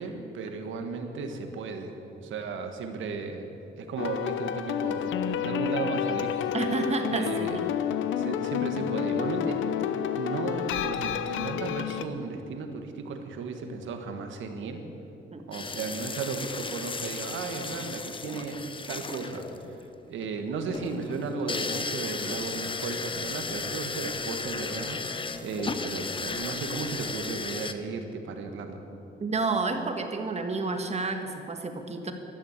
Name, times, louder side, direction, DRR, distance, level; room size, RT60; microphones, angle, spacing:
voice 1, 0.0-3.5 3.8-6.5 7.1-7.6 8.2-9.6 10.1-14.8 15.5-18.6 18.9-28.8, right 4 dB, 75° right, 5 dB, 1.7 m, -35 dB
sound 1, 4.0-12.1, left 9 dB, 80° left, 0.8 m, -29 dB
voice 2, 6.5-7.6 15.3-15.4 29.2-32.1, right 3 dB, 35° right, 5 dB, 1.6 m, -30 dB
sound 2, 15.5-27.7, left 4 dB, 25° left, 0.9 m, -35 dB
12.0 x 11.5 x 8.2 m, 2.8 s
cardioid pair, 90°, 20 cm